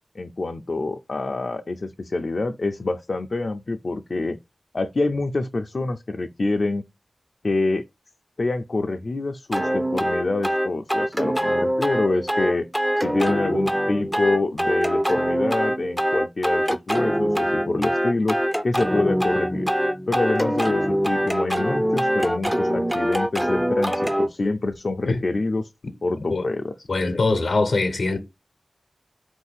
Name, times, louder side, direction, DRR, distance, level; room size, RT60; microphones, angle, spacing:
voice 1, 0.2-4.4 4.7-6.8 7.4-7.8 8.4-12.7 13.0-18.4 18.6-19.7 20.1-25.7 26.0-26.9, left 2 dB, 65° left, 0.4 m, -26 dB
sound 1, 9.5-24.3, equal, 5° right, 0.5 m, -23 dB
voice 2, 26.9-28.2, left 3 dB, 90° left, 0.8 m, -22 dB
4.3 x 2.6 x 4.0 m
wide cardioid pair, 50°, 0 cm